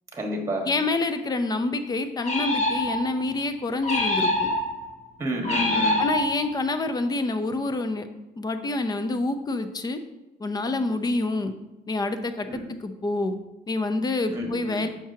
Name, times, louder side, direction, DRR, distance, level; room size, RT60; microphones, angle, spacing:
voice 1, 0.1-0.7 5.2-6.0 12.5-12.6 14.3-14.9, equal, 15° right, 2 dB, 1.5 m, -29 dB
voice 2, 0.7-4.5 6.0-8.1 8.4-10.0 10.4-11.5 11.9-13.4 13.7-14.9, left 2 dB, 25° left, 9 dB, 0.6 m, -27 dB
sound 1, 2.2-3.3 3.8-4.9 5.4-6.6, left 1 dB, 45° left, 1.2 m, -25 dB
7.2 x 5.8 x 2.8 m, 1.0 s
cardioid pair, 110°, 17 cm